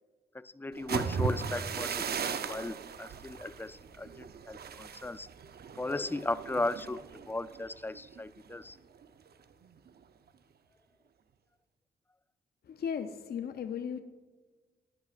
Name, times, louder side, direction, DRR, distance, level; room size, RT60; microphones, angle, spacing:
voice 1, 0.3-5.3 5.8-8.8, left 2 dB, 10° left, 16 dB, 0.4 m, -36 dB
sound 1, 0.7-8.6 8.9-9.3 9.6-10.0, right 6 dB, 55° right, 0.7 m, -38 dB
voice 2, 12.6-14.0, left 7 dB, 60° left, 9 dB, 0.6 m, -36 dB
14.5 x 10.5 x 2.5 m, 1.3 s
supercardioid pair, 50°, 19 cm